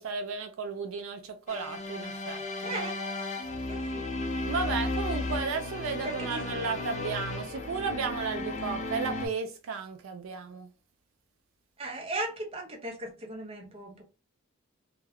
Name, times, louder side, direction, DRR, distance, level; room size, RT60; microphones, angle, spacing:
voice 1, 0.0-2.8 4.4-10.7, right 5 dB, 70° right, 0.4 m, -34 dB
sound 1, 1.5-9.3, left 2 dB, 35° left, 0.5 m, -34 dB
voice 2, 2.6-3.0 3.7-4.1 6.0-6.4 11.8-14.0, right 2 dB, 30° right, 0.6 m, -37 dB
2.2 x 2.2 x 3.3 m
head